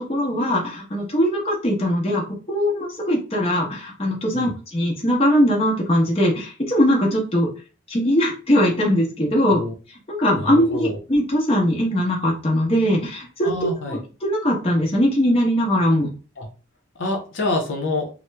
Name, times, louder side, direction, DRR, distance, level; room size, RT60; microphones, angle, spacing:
voice 1, 0.1-7.5 7.9-9.6 10.1-16.1, equal, 30° left, -2 dB, 0.9 m, -21 dB
voice 2, 10.4-11.0 13.4-14.0 16.4-16.5 17.0-18.1, left 2 dB, 75° left, 0 dB, 0.7 m, -26 dB
3.0 x 2.1 x 3.3 m, 0.34 s
head